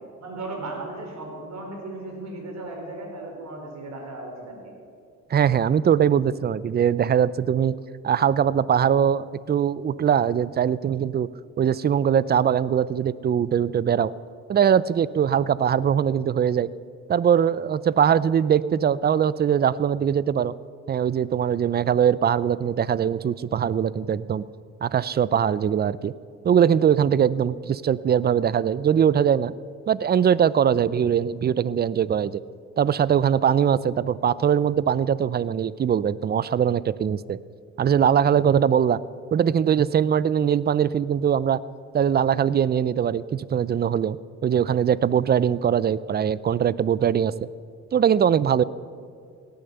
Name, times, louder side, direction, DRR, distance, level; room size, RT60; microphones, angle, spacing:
voice 1, 0.2-4.7, right 2 dB, 65° right, 1 dB, 4.6 m, -36 dB
voice 2, 5.3-7.8 8.0-11.3 11.6-14.1 14.5-16.7 17.1-20.5 20.9-24.4 24.8-26.1 26.4-29.5 29.9-32.4 32.8-37.4 37.8-39.0 39.3-41.6 41.9-44.2 44.4-47.3 47.9-48.6, right 8 dB, 35° right, 19 dB, 0.5 m, -21 dB
17.5 x 10.5 x 6.9 m, 2.2 s
cardioid pair, 90°, 30 cm